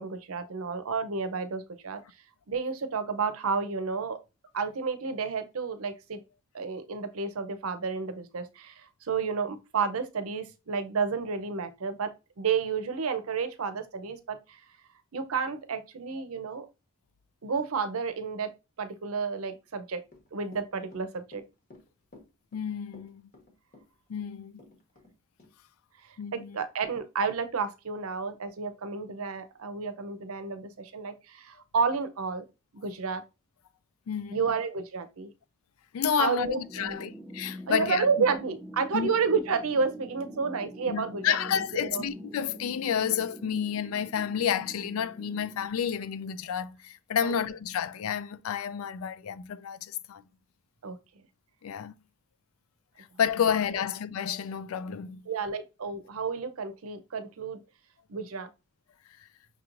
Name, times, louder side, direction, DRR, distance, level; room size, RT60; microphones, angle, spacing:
voice 1, 0.0-2.0 2.5-4.2 4.5-6.2 6.5-12.1 12.4-14.6 15.1-16.7 17.4-18.5 18.8-20.0 20.3-21.4 26.3-32.4 32.7-33.2 34.3-35.3 36.2-37.1 37.7-42.0 47.2-47.3 50.8-51.0 53.7-53.8 55.3-57.6 58.1-58.5, right 5 dB, 80° right, 0.6 m, -31 dB
Run / Walk footsteps, 20.0-25.1 25.4-25.5, left 2 dB, 45° left, 1.2 m, -53 dB
voice 2, 22.5-23.2 24.1-24.5 26.2-26.6 34.1-34.4 35.9-38.0 38.9-39.1 40.9-50.2 51.6-51.9 53.2-55.2, left 8 dB, 80° left, 0.4 m, -30 dB
sound 1, 36.5-45.7, equal, ahead, 0.6 m, -45 dB
5.8 x 3.0 x 2.5 m
head